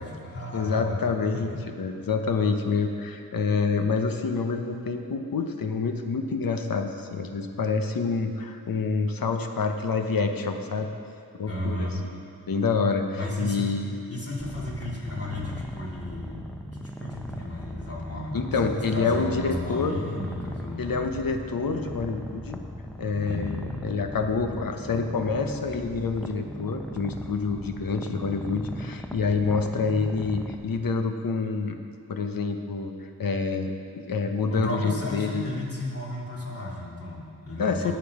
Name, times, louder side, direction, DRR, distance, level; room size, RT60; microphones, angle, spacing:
voice 1, 0.0-1.6 11.5-12.1 13.1-13.7 14.1-16.5 16.7-21.0 23.2-23.7 34.5-37.9, left 1 dB, 40° left, -5 dB, 2.8 m, -34 dB
voice 2, 0.5-1.5 1.8-10.9 11.4-12.2 12.5-13.0 13.4-14.0 18.3-19.9 20.8-22.6 23.0-31.8 32.1-32.9 33.2-33.7 34.1-35.5 37.6-37.9, left 4 dB, 65° left, 5 dB, 1.0 m, -27 dB
Purr, 14.4-30.6, equal, 5° left, 0.7 m, -38 dB
17.5 x 6.1 x 4.9 m, 2.4 s
wide cardioid pair, 80°, 36 cm